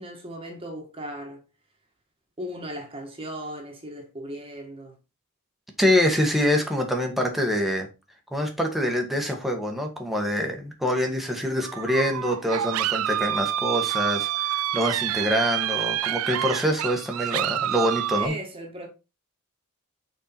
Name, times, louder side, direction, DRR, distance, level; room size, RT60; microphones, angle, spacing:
voice 1, 0.0-1.4 2.4-4.9 18.1-18.9, equal, 25° right, 1.6 m, -37 dB
voice 2, 5.8-7.9 8.3-18.3, equal, ahead, 1.5 m, -25 dB
sound 1, 11.6-18.3, right 12 dB, 75° right, 0.4 m, -28 dB
6.5 x 4.6 x 4.4 m
head